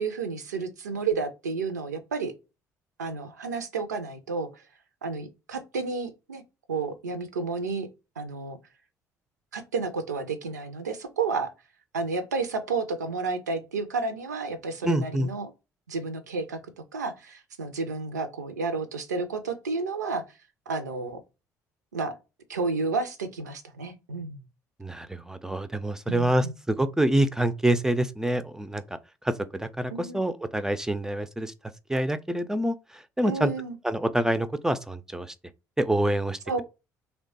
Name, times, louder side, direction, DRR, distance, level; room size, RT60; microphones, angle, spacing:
voice 1, 0.0-2.3 3.0-4.6 5.0-6.4 6.7-7.9 8.2-8.6 9.5-11.5 11.9-15.5 15.9-16.6 16.9-20.4 20.7-21.2 21.9-22.1 22.5-24.4 26.1-26.5 29.9-30.2 33.2-33.8 36.5-36.6, right 4 dB, 80° right, 0.4 m, -31 dB
voice 2, 14.8-15.3 24.8-29.0 29.2-31.5 31.9-33.5 33.8-35.3 35.8-36.6, right 1 dB, 5° right, 0.3 m, -26 dB
2.9 x 2.1 x 2.7 m
figure-of-eight pair, 50°, 9 cm